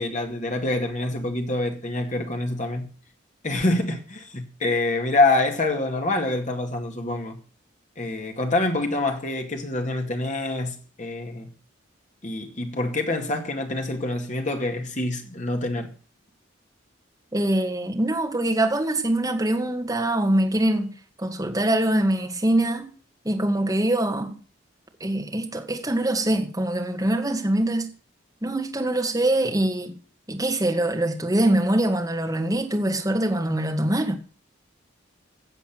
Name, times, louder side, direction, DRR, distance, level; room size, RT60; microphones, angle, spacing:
voice 1, 0.0-2.9 3.4-7.4 8.0-11.5 12.2-15.9, left 2 dB, 40° left, 2.2 m, -26 dB
voice 2, 17.3-22.9 23.3-24.4 25.0-27.9 28.4-29.9 30.3-34.2, right 1 dB, 20° right, 2.0 m, -23 dB
17.0 x 7.3 x 6.0 m
head